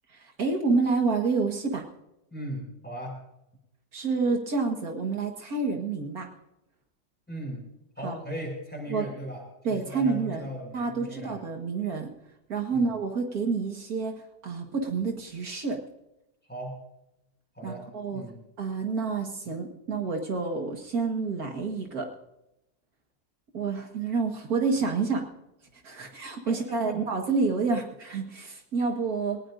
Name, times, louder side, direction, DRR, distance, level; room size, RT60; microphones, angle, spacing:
voice 1, 0.1-1.8 3.9-6.3 8.0-8.2 8.9-9.1 9.6-10.5 10.7-12.1 12.5-14.1 14.4-15.8 17.6-18.3 18.6-22.1 23.5-25.3 25.8-29.4, right 4 dB, 70° right, 3 dB, 2.1 m, -28 dB
voice 2, 2.3-3.2 7.3-7.6 8.0-9.4 9.7-11.4 12.7-12.9 16.5-16.8 17.5-17.9 18.1-18.4 26.0-26.1 26.4-27.0, right 1 dB, 5° left, -1 dB, 6.4 m, -38 dB
21.0 x 19.5 x 2.6 m, 0.88 s
omnidirectional pair, 1.6 m